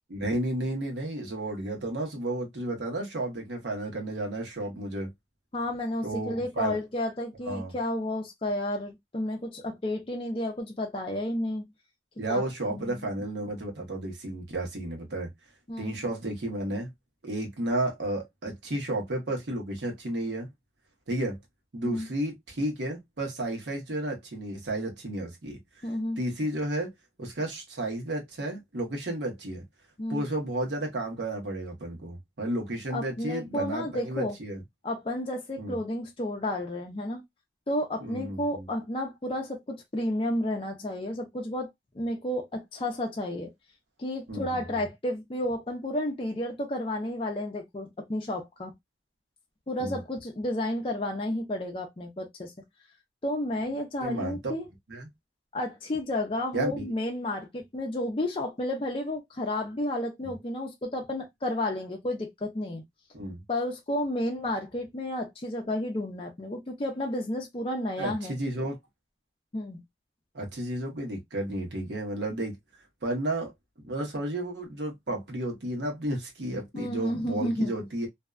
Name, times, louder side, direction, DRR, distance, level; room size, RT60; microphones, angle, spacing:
voice 1, 0.1-5.1 6.0-6.8 7.5-7.7 12.2-15.3 15.8-16.9 17.2-20.5 21.1-21.4 21.7-25.9 26.2-26.9 27.2-29.6 30.1-34.6 35.6-35.8 38.0-38.7 44.3-44.8 49.8-50.0 54.0-54.5 54.9-55.1 56.5-56.9 63.1-63.4 68.0-68.8 70.3-73.5 73.8-78.1, right 1 dB, 80° right, 1.0 m, -32 dB
voice 2, 5.5-11.6 12.3-12.4 12.7-13.1 15.7-16.0 21.8-22.1 25.8-26.2 30.0-30.2 32.9-34.4 34.8-37.2 37.7-41.7 41.9-43.5 44.0-48.7 49.7-52.5 53.2-54.6 55.5-62.8 63.5-68.4 69.5-69.8 76.7-77.7, left 1 dB, 30° left, 0.5 m, -31 dB
2.6 x 2.2 x 2.3 m
head